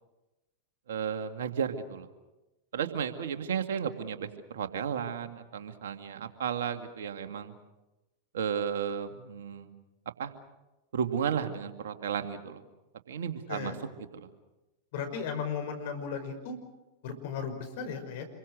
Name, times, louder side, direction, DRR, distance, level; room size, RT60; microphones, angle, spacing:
voice 1, 0.9-2.1 2.7-7.5 8.3-9.7 10.2-10.3 10.9-12.6 13.1-13.8 14.1-14.3, right 7 dB, 70° right, 7 dB, 2.1 m, -33 dB
voice 2, 14.9-16.5 17.0-18.2, left 6 dB, 60° left, 6 dB, 5.4 m, -35 dB
27.5 x 23.0 x 6.4 m, 1.0 s
hypercardioid pair, 95°, 0 cm